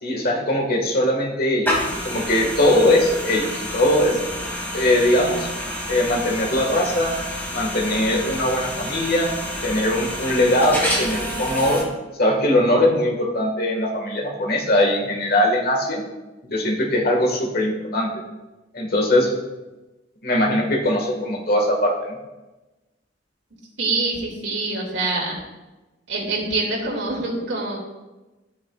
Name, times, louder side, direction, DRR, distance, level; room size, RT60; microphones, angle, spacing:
voice 1, 0.0-4.2 4.7-5.5 5.9-7.1 7.5-9.3 9.6-11.8 12.2-16.0 16.5-18.1 18.7-19.3 20.2-22.1, left 1 dB, 55° left, 1 dB, 1.6 m, -20 dB
sound 1, 1.6-11.8, left 1 dB, 10° left, 2.2 m, -29 dB
voice 2, 23.8-25.4 26.1-27.8, right 3 dB, 75° right, -3 dB, 2.3 m, -25 dB
12.5 x 7.9 x 2.4 m, 1.1 s
head